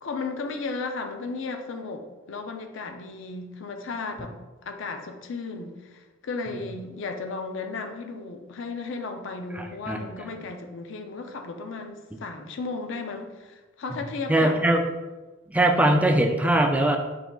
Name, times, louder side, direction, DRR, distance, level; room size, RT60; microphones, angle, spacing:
voice 1, 0.0-4.4 4.6-14.6, left 3 dB, 65° left, 5 dB, 0.5 m, -35 dB
voice 2, 9.5-10.0 13.9-14.0 14.3-14.8 15.5-17.0, right 1 dB, 5° right, 2 dB, 0.3 m, -21 dB
4.8 x 3.7 x 2.3 m, 1.1 s
head